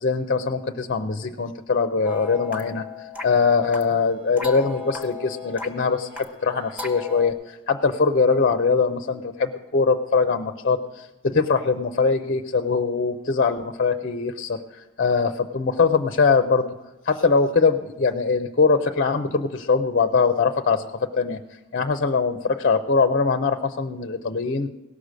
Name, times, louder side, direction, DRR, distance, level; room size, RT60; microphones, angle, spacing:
voice 1, 0.0-16.7 17.0-21.4 21.7-24.7, left 4 dB, 40° left, 8 dB, 0.5 m, -22 dB
sound 1, 2.0-7.3, left 4 dB, 5° right, 1.0 m, -37 dB
17.5 x 6.7 x 6.2 m, 1.0 s
head